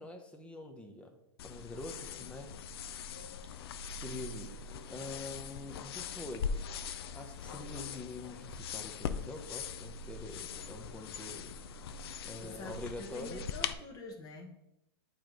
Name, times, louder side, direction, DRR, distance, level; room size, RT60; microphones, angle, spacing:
voice 1, 0.0-2.6 4.0-4.5 4.9-6.7 7.1-11.6 12.2-13.4, left 2 dB, 10° left, 4 dB, 0.8 m, -45 dB
sound 1, 1.4-13.7, left 6 dB, 65° left, 0.5 m, -41 dB
voice 2, 12.4-14.5, left 3 dB, 30° left, 2 dB, 1.3 m, -47 dB
8.5 x 3.2 x 3.9 m, 0.87 s
hypercardioid pair, 125°, 14 cm